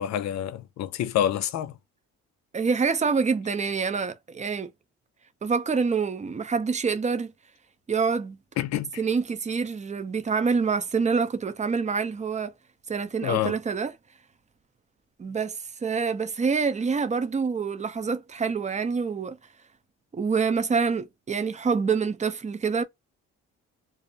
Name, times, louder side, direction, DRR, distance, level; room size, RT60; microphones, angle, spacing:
voice 1, 0.0-1.7 8.6-9.0 13.2-13.6, left 11 dB, 65° left, 0.5 m, -27 dB
voice 2, 2.5-4.7 5.4-7.3 7.9-8.4 9.0-12.5 12.9-13.9 15.2-19.4 20.1-22.8, right 5 dB, 25° right, 0.5 m, -26 dB
2.5 x 2.0 x 2.6 m
cardioid pair, 90°, 30 cm